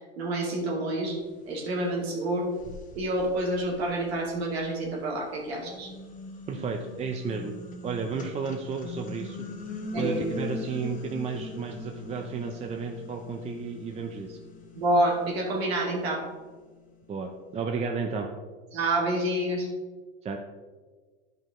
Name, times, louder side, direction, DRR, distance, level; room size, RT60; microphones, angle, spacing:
voice 1, 0.2-1.2 1.5-2.5 2.9-5.9 9.9-10.2 14.8-16.2 18.7-19.7, right 1 dB, 80° right, -1 dB, 2.6 m, -28 dB
sound 1, 1.8-1.9 2.5-4.8 5.4-16.7, left 2 dB, 25° left, 1.2 m, -41 dB
voice 2, 6.5-7.5 7.8-9.5 9.9-14.4 17.1-18.3 20.2-20.4, right 5 dB, 20° right, 3 dB, 0.6 m, -33 dB
10.5 x 5.3 x 3.7 m, 1.4 s
supercardioid pair, 115°, 31 cm